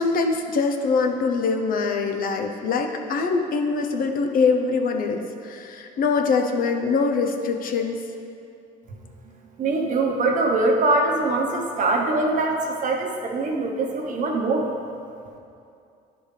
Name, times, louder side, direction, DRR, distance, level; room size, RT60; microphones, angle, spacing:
voice 1, 0.0-8.0, left 4 dB, 55° left, 3 dB, 0.7 m, -23 dB
voice 2, 9.6-14.7, right 2 dB, 50° right, 1 dB, 1.0 m, -23 dB
10.5 x 5.2 x 3.3 m, 2.5 s
cardioid pair, 110°, 17 cm